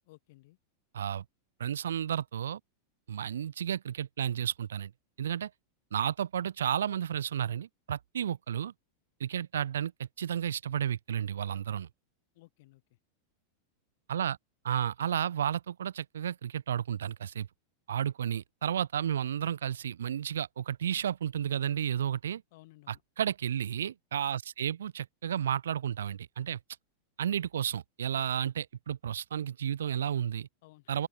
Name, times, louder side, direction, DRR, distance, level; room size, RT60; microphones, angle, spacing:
voice 1, 0.1-0.6 12.3-12.8 22.5-23.0 30.6-31.1, left 20 dB, 50° left, 1.7 m, -57 dB
voice 2, 0.9-1.2 1.6-2.6 3.1-4.9 5.2-5.5 5.9-8.7 9.2-11.9 14.1-14.4 14.6-17.5 17.9-22.4 22.9-26.6 27.2-30.5 30.9-31.1, right 9 dB, 65° right, 0.4 m, -32 dB
open air
figure-of-eight pair, 90°, 0 cm